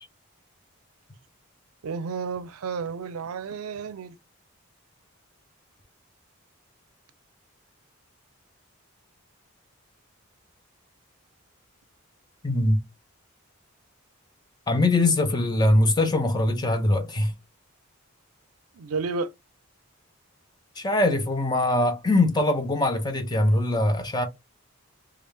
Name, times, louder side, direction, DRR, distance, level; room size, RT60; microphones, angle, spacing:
voice 1, 1.8-4.2 18.7-19.3, right 5 dB, 85° right, 0.5 m, -31 dB
voice 2, 12.4-12.8 14.7-17.3 20.8-24.3, left 1 dB, 20° left, 0.5 m, -22 dB
3.2 x 2.3 x 3.3 m
head